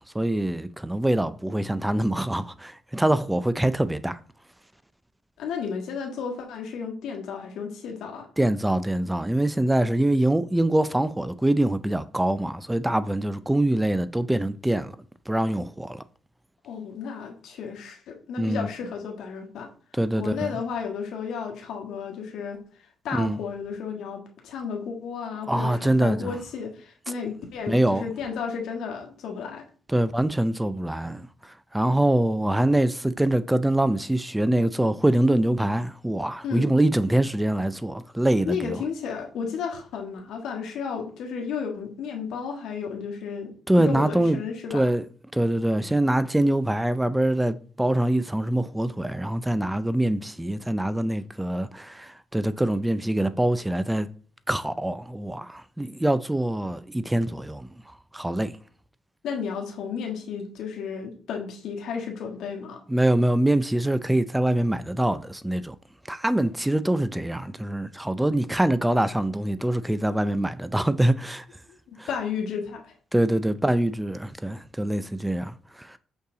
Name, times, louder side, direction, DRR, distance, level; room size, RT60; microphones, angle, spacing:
voice 1, 0.1-4.2 8.4-15.0 15.3-16.0 18.4-18.7 19.9-20.5 23.1-23.4 25.5-26.4 27.7-28.1 29.9-38.8 43.7-44.4 44.7-45.0 45.3-54.1 54.5-57.7 58.1-58.6 62.9-65.8 66.1-71.4 72.0-72.1 73.1-76.0, right 1 dB, 10° right, 0.5 m, -24 dB
voice 2, 5.4-8.3 16.6-19.7 20.2-22.6 23.0-29.6 36.4-36.7 38.5-43.5 43.8-44.8 59.2-62.8 71.9-72.9, left 6 dB, 80° left, 1.6 m, -33 dB
6.5 x 5.6 x 3.9 m
cardioid pair, 90°, 0 cm